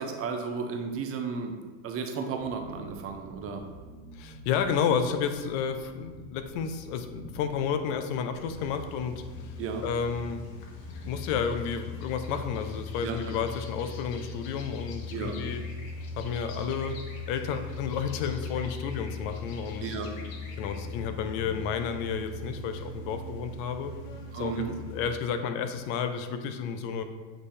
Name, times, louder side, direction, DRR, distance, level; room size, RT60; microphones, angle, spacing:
voice 1, 0.0-1.6 1.8-3.6 9.6-9.8 13.0-13.2 15.1-15.4 19.8-20.1 24.3-24.7, right 5 dB, 35° right, 5 dB, 0.7 m, -33 dB
sound 1, 2.3-11.5, right 2 dB, 85° right, 0.9 m, -49 dB
voice 2, 4.1-9.1 9.4-9.5 9.8-10.4 10.9-15.6 16.2-17.0 17.3-19.9 20.6-23.9 24.3-27.0, left 7 dB, 70° left, 8 dB, 0.7 m, -31 dB
sound 2, 8.4-25.1, left 3 dB, 85° left, 1.1 m, -40 dB
7.7 x 3.3 x 4.2 m, 1.4 s
supercardioid pair, 135°, 39 cm